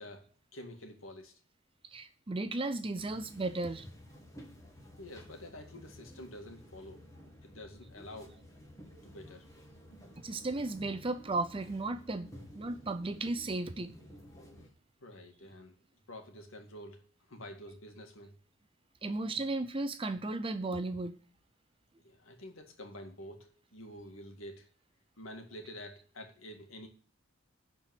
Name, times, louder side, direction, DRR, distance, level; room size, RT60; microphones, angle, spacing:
voice 1, 0.0-1.4 5.0-7.0 7.4-8.4 9.0-9.5 15.0-15.7 16.1-18.4 22.0-24.7 25.2-26.9, left 1 dB, 85° left, 2.1 m, -48 dB
voice 2, 1.9-3.9 10.2-12.3 12.6-13.9 19.0-21.1, right 2 dB, 25° right, 0.6 m, -35 dB
sound 1, 3.0-14.7, equal, 15° left, 2.1 m, -53 dB
11.0 x 4.5 x 7.8 m
head